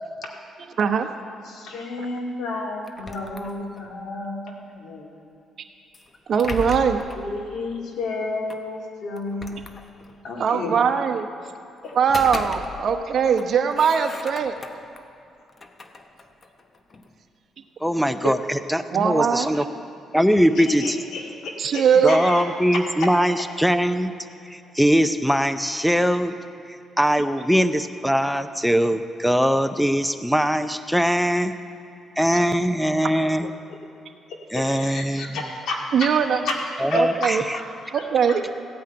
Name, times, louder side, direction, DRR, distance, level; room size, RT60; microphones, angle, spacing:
voice 1, 0.8-1.1 6.3-7.0 10.4-11.3 12.0-14.5 18.2-18.3 18.9-19.5 21.6-22.2 33.4-33.5 35.9-36.4 36.9-37.4 37.9-38.4, right 7 dB, 60° right, 7 dB, 0.9 m, -21 dB
voice 2, 1.4-5.3 7.1-9.6 10.2-10.7 11.8-11.9 20.3-22.5 22.7-23.1 34.3-36.1 36.4-36.6 36.9-37.7 37.9-38.4, left 3 dB, 70° left, 0 dB, 2.2 m, -32 dB
sound 1, 2.8-4.0 5.9-7.3 8.5-8.6 9.2-10.3 11.8-13.1 13.4-15.0 15.5-17.1, left 3 dB, 35° left, 0.9 m, -37 dB
voice 3, 17.8-19.6 20.1-20.9 22.0-24.1 24.5-26.3 26.7-31.5 32.2-33.5 34.5-35.4 36.8-37.4, equal, ahead, 10 dB, 0.6 m, -21 dB
15.5 x 5.7 x 8.9 m, 2.7 s
cardioid pair, 90°, 0 cm